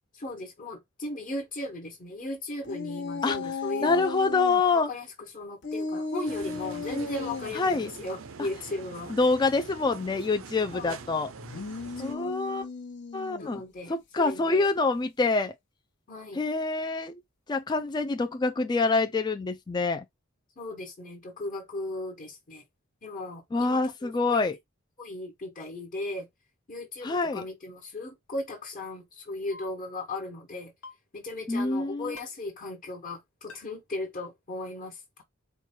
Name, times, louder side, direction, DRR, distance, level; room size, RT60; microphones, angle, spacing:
voice 1, 0.1-4.0 4.7-9.1 10.7-11.0 11.9-12.3 13.4-14.7 16.1-16.4 20.6-22.6 23.0-24.5 25.0-26.3 26.7-30.7 31.1-35.2, left 2 dB, 40° left, 1.2 m, -37 dB
sound 1, 2.6-4.6 5.6-7.6 11.4-13.6, left 4 dB, 55° left, 0.9 m, -35 dB
voice 2, 3.8-4.9 7.5-7.9 9.1-11.3 12.0-12.7 13.1-13.6 14.1-15.5 16.3-17.2 17.5-20.0 23.5-24.6 27.0-27.4 31.5-32.2, left 3 dB, 20° left, 0.3 m, -26 dB
sound 2, 6.2-12.2, right 5 dB, 65° right, 0.5 m, -44 dB
sound 3, 29.5-29.7 30.8-31.0 32.2-32.3 33.5-33.6, left 3 dB, 85° left, 1.3 m, -44 dB
4.4 x 2.2 x 4.3 m
head